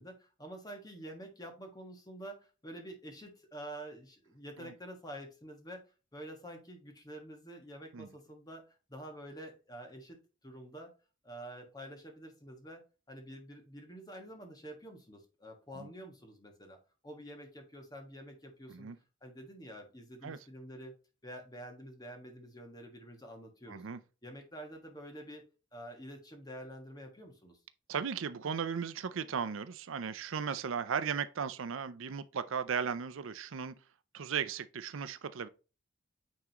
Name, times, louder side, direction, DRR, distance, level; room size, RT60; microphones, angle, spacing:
voice 1, 0.0-5.9 6.1-10.9 11.2-16.8 17.0-18.9 19.2-20.9 21.2-23.8 24.2-25.4 25.7-27.6, right 1 dB, 20° left, 1.5 m, -48 dB
voice 2, 23.7-24.0 27.9-33.7 34.1-35.5, right 6 dB, 70° right, 0.5 m, -36 dB
9.2 x 3.7 x 2.9 m
head